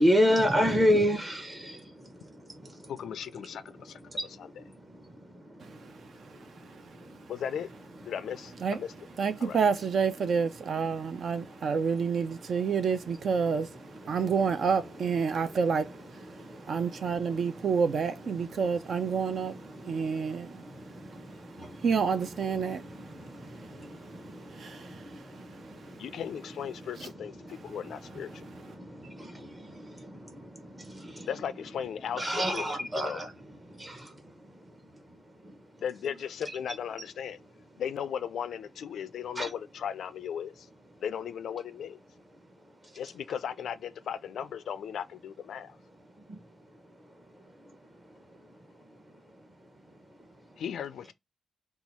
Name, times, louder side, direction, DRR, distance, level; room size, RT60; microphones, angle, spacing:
voice 1, 0.0-7.4 7.9-8.2 8.5-9.3 10.7-12.8 13.3-14.9 15.2-17.8 18.3-31.4 32.1-35.8 36.4-36.6 37.5-37.8 39.1-39.5 40.9-41.0 42.1-43.0 45.7-50.6, equal, 20° right, 0.9 m, -35 dB
voice 2, 2.9-4.0 7.3-7.7 8.0-8.9 9.4-9.6 26.0-28.3 31.3-32.2 32.5-32.6 33.0-33.2 35.8-37.4 37.8-40.5 41.0-42.0 42.9-45.8 50.6-51.1, left 8 dB, 70° left, 0.3 m, -36 dB
voice 3, 6.4-7.0 8.6-8.8 9.2-16.2 16.7-19.6 19.8-20.6 21.8-23.0 23.8-23.9 24.5-25.8 27.0-27.1 28.6-28.7, right 6 dB, 50° right, 0.4 m, -29 dB
2.8 x 2.3 x 4.2 m
wide cardioid pair, 145°, 0 cm